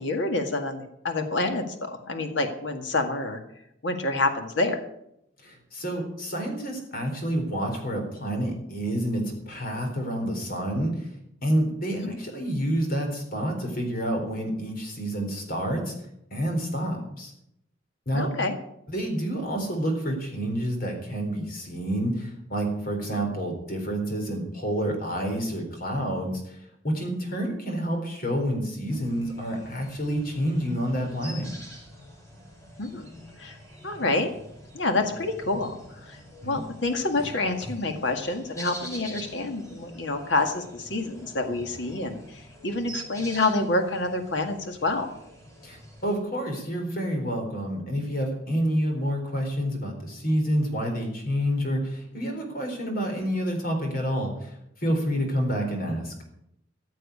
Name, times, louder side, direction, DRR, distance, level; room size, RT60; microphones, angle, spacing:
voice 1, 0.0-3.4 3.8-4.8 11.9-12.1 18.1-18.5 32.8-33.1 33.4-33.6 33.8-34.3 34.7-36.2 36.5-45.1, left 2 dB, 70° left, 5 dB, 1.9 m, -27 dB
voice 2, 5.4-11.1 11.4-15.9 16.3-17.3 18.1-18.3 18.9-26.6 26.8-31.5 36.4-36.6 45.6-56.2, equal, 50° left, 3 dB, 4.2 m, -28 dB
sound 1, 28.9-46.2, equal, 15° left, 6.9 m, -45 dB
15.0 x 7.7 x 8.4 m, 0.77 s
head